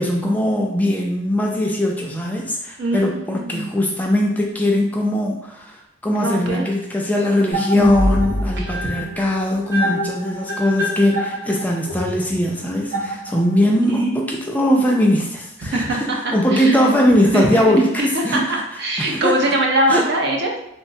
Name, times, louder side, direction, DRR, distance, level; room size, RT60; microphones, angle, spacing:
voice 1, 0.0-18.5 19.0-19.4 19.9-20.1, left 1 dB, 10° left, -1 dB, 0.3 m, -20 dB
voice 2, 2.8-3.8 6.2-6.6 7.8-7.9 8.6-8.7 13.9-14.1 15.6-16.8 17.3-20.6, right 1 dB, 60° right, 0 dB, 0.5 m, -22 dB
sound 1, 7.5-13.7, equal, 85° right, 1.2 m, -25 dB
3.0 x 2.1 x 2.6 m, 0.80 s
head